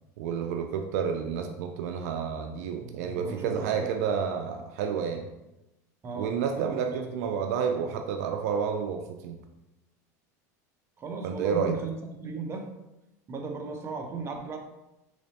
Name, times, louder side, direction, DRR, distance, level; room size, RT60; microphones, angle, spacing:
voice 1, 0.2-5.3 6.1-9.4 11.2-11.7, right 7 dB, 70° right, 5 dB, 0.4 m, -30 dB
voice 2, 2.8-3.9 6.0-7.0 11.0-12.7 13.3-14.6, right 4 dB, 30° right, 4 dB, 0.6 m, -36 dB
3.7 x 3.0 x 2.8 m, 0.95 s
hypercardioid pair, 95°, 9 cm